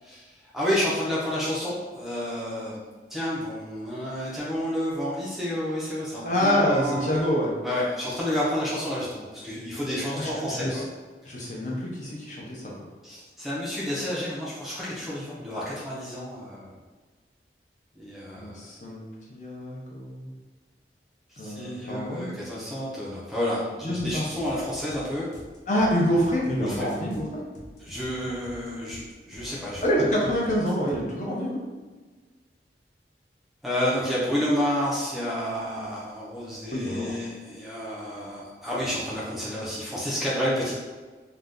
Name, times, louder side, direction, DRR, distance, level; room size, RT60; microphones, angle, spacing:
voice 1, 0.0-7.1 7.6-10.8 13.0-16.8 18.0-18.7 21.3-25.3 26.6-26.8 27.8-29.8 33.6-40.7, equal, ahead, -7 dB, 0.5 m, -30 dB
voice 2, 6.2-7.5 10.2-10.8 11.2-12.7 18.3-20.3 21.4-22.3 23.8-24.2 25.7-27.4 29.8-31.6 36.7-37.1, equal, 40° left, -3 dB, 0.6 m, -26 dB
sound 1, 24.0-31.1, equal, 80° left, 0.7 m, -46 dB
2.5 x 2.2 x 3.5 m, 1.4 s
head